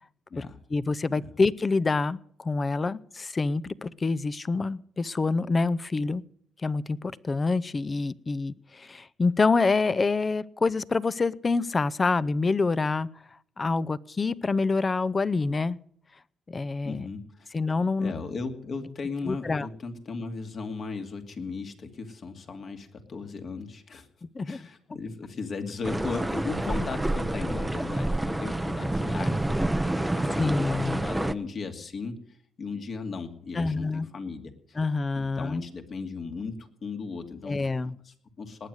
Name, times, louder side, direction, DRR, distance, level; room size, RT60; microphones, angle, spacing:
voice 1, 0.4-6.2 6.6-13.1 13.6-15.8 16.5-17.1 17.5-18.2 19.3-19.7 24.3-24.6 30.4-31.0 33.5-34.1 34.8-35.6 37.4-38.0, left 3 dB, 30° left, 19 dB, 0.7 m, -26 dB
voice 2, 16.8-17.5 18.0-24.1 24.4-32.2 32.6-34.5 35.1-37.6 38.0-38.7, left 4 dB, 50° left, 6 dB, 2.5 m, -36 dB
sound 1, 25.8-31.3, right 1 dB, 10° right, 0.7 m, -28 dB
19.5 x 9.4 x 6.5 m, 0.64 s
cardioid pair, 90°, 0 cm